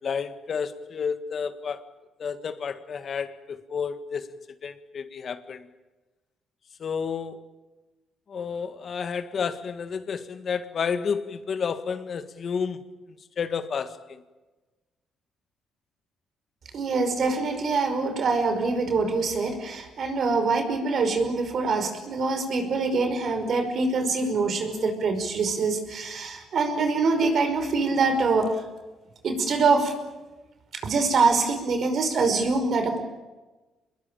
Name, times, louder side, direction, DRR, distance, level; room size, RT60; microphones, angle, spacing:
voice 1, 0.0-1.8 2.2-4.3 4.6-5.7 6.8-7.5 8.3-12.8 13.4-14.2, left 6 dB, 50° left, 1.8 m, -31 dB
voice 2, 16.7-28.6 29.2-29.9 30.7-33.0, right 4 dB, 60° right, 5.5 m, -24 dB
26.5 x 21.5 x 9.0 m
cardioid pair, 90°, 0 cm